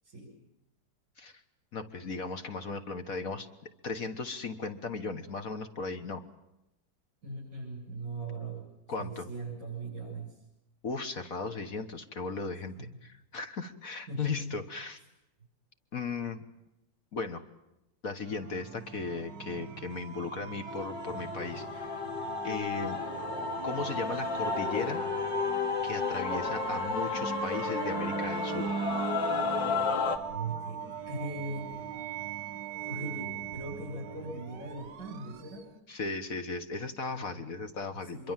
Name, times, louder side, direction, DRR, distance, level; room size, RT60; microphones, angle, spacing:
voice 1, 1.7-6.2 8.9-9.3 10.8-15.0 15.9-16.4 17.1-17.4 18.0-22.0 22.4-23.0 23.6-25.0 25.8-28.7 35.9-38.3, left 4 dB, 55° left, 8 dB, 1.8 m, -36 dB
voice 2, 7.2-8.7 9.0-10.3 12.8-13.0 14.1-14.4 30.1-31.8 32.9-35.7 38.1-38.3, right 3 dB, 50° right, -4 dB, 8.1 m, -39 dB
sound 1, 18.3-35.8, right 8 dB, 75° right, 2.1 m, -39 dB
Male singing / Female singing / Musical instrument, 20.7-30.2, left 5 dB, 85° left, 2.5 m, -33 dB
25.0 x 23.0 x 7.5 m, 0.91 s
omnidirectional pair, 1.9 m